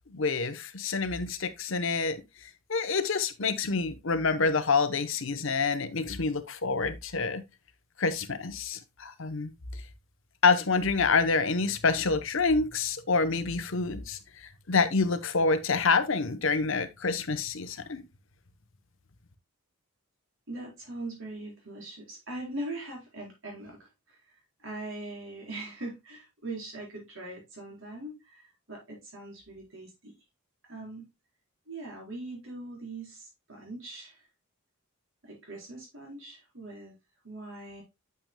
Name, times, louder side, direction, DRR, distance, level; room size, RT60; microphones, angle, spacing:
voice 1, 0.1-2.2 2.7-7.4 8.0-9.5 10.4-14.2 14.7-18.0, left 4 dB, 60° left, 0.8 m, -27 dB
voice 2, 20.5-24.2 24.6-30.1 30.7-31.1 31.7-34.2 35.2-36.9 37.2-37.8, right 2 dB, 65° right, 4.3 m, -41 dB
9.1 x 7.0 x 2.2 m
head